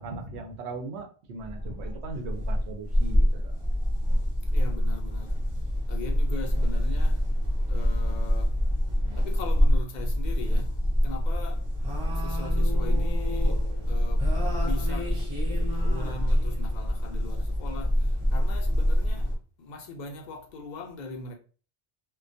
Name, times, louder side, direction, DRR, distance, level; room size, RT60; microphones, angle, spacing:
voice 1, 0.0-3.5, right 3 dB, 80° right, 0.8 m, -38 dB
sound 1, 1.4-19.4, equal, 35° right, 0.6 m, -25 dB
voice 2, 4.5-5.4 5.9-7.3 7.7-8.6 9.2-10.8 11.0-11.7 12.1-13.6 13.9-14.3 14.6-21.3, left 3 dB, 55° left, 0.5 m, -40 dB
2.2 x 2.2 x 2.5 m
omnidirectional pair, 1.1 m